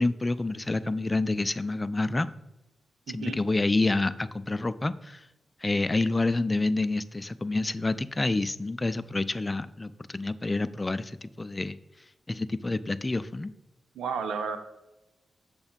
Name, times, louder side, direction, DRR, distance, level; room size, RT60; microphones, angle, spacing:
voice 1, 0.0-2.3 3.1-5.2 5.6-11.8 12.3-13.5, left 2 dB, 30° left, 14 dB, 0.5 m, -28 dB
voice 2, 3.1-3.4 13.9-14.6, right 6 dB, 85° right, 8 dB, 0.7 m, -32 dB
7.0 x 7.0 x 5.2 m, 0.96 s
supercardioid pair, 45°, 0 cm